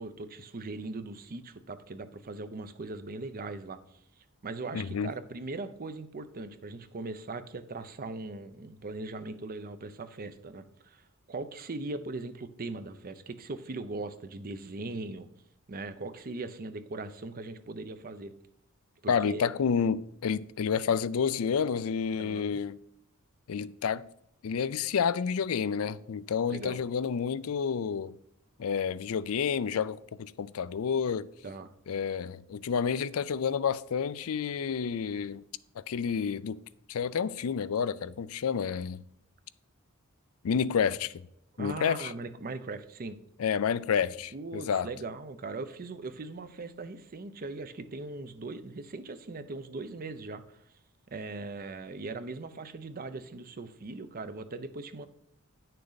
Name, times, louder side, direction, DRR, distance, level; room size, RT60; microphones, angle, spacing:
voice 1, 0.0-3.8 4.2-15.3 15.7-18.3 19.0-19.5 22.2-22.6 26.5-26.8 31.4-31.7 41.6-43.2 44.3-50.6 51.1-55.1, right 3 dB, 40° right, 0.6 m, -40 dB
voice 2, 4.7-5.1 19.1-22.8 23.5-24.0 24.4-28.2 28.6-31.3 31.9-35.4 35.9-36.6 36.9-39.0 40.4-41.3 41.6-42.1 43.4-44.9, left 6 dB, 70° left, 0.4 m, -29 dB
9.9 x 6.6 x 4.0 m
head